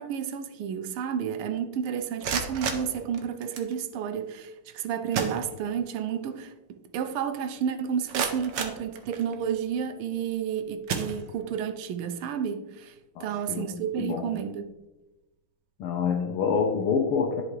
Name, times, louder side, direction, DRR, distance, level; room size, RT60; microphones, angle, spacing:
voice 1, 0.0-12.9 13.2-14.6, right 8 dB, 90° right, 1.5 m, -31 dB
sound 1, 2.0-3.8 4.7-4.8 5.1-6.0 6.4-6.5 7.0-7.1 7.7-9.5 10.2-10.4 10.8-11.7, right 6 dB, 65° right, 1.4 m, -33 dB
voice 2, 13.2-13.7 14.0-14.3 15.8-17.4, left 6 dB, 85° left, 1.6 m, -27 dB
10.5 x 4.8 x 3.2 m
omnidirectional pair, 2.3 m